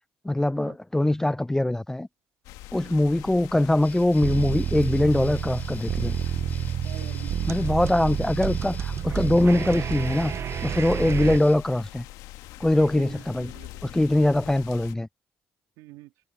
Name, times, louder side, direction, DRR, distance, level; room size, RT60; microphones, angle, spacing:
voice 1, 0.2-2.1 2.7-6.2 7.5-10.3 10.6-12.0 12.6-13.5 13.8-15.1, left 1 dB, 10° left, 0.4 m, -22 dB
sound 1, 2.4-14.9, left 17 dB, 75° left, 1.3 m, -43 dB
sound 2, 3.8-11.6, left 4 dB, 25° left, 4.1 m, -46 dB
sound 3, 4.2-11.4, right 9 dB, 45° right, 0.7 m, -29 dB
voice 2, 6.8-7.9 9.4-9.7 12.7-13.9 14.2-14.4 15.8-16.1, right 18 dB, 75° right, 3.2 m, -46 dB
supercardioid pair, 75°, 6 cm